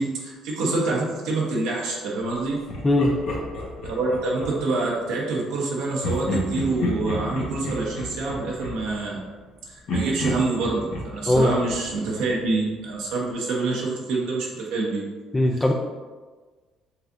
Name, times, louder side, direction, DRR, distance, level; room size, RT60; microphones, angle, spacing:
voice 1, 0.0-2.6 3.8-9.2 9.7-15.0 15.5-15.6, right 3 dB, 80° right, -3 dB, 0.9 m, -26 dB
Laughter, 2.7-4.8 6.0-9.5 9.9-12.6, left 1 dB, 70° left, 1.1 m, -31 dB
voice 2, 2.8-3.1 11.3-11.5 15.3-15.7, left 1 dB, 20° left, 1 dB, 0.5 m, -19 dB
5.5 x 3.3 x 2.6 m, 1.4 s
hypercardioid pair, 60°, 0 cm